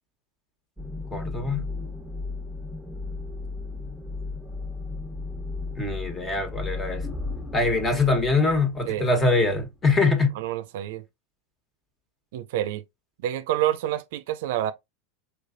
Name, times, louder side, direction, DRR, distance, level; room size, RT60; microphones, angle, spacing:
sound 1, 0.8-10.1, left 3 dB, ahead, 1.1 m, -35 dB
voice 1, 1.1-1.7 5.8-7.1 7.5-10.4, left 3 dB, 20° left, 1.4 m, -23 dB
voice 2, 10.4-11.0 12.3-12.8 13.2-14.7, right 12 dB, 70° right, 0.5 m, -28 dB
4.6 x 3.1 x 2.6 m
hypercardioid pair, 105°, 0 cm